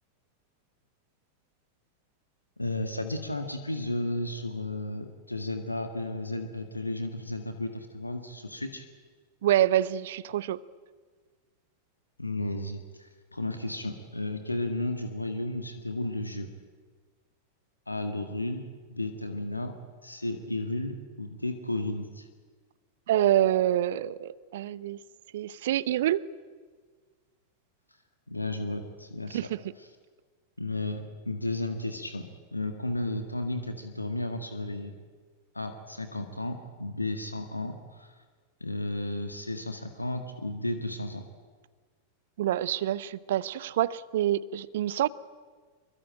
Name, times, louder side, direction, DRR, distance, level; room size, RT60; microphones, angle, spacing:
voice 1, 2.6-8.8 12.2-16.5 17.9-18.6 18.9-19.7 20.0-22.3 28.3-29.5 29.8-30.0 30.6-34.9 35.5-38.2 38.6-41.2, left 2 dB, 85° left, 6 dB, 1.8 m, -33 dB
voice 2, 9.4-10.6 23.1-25.0 25.3-26.2 29.3-29.5 42.4-45.1, right 12 dB, 55° right, 19 dB, 0.8 m, -26 dB
25.5 x 23.5 x 8.9 m, 1.5 s
figure-of-eight pair, 90°, 0 cm